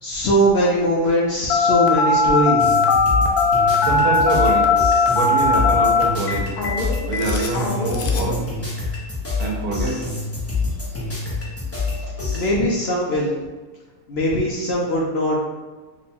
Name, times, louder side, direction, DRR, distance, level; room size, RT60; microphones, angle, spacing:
voice 1, 0.0-2.7 12.3-13.3 14.1-15.4, equal, 65° left, -4 dB, 0.6 m, -20 dB
Telephone, 1.5-8.4, left 3 dB, 85° left, 1.1 m, -19 dB
sound 1, 2.6-12.5, left 3 dB, 25° left, 0.3 m, -27 dB
voice 2, 3.8-4.7 5.1-6.5 7.0-8.5 9.4-10.0 10.8-11.4, right 2 dB, 85° right, 0 dB, 1.1 m, -25 dB
3.0 x 2.2 x 4.2 m, 1.3 s
omnidirectional pair, 1.6 m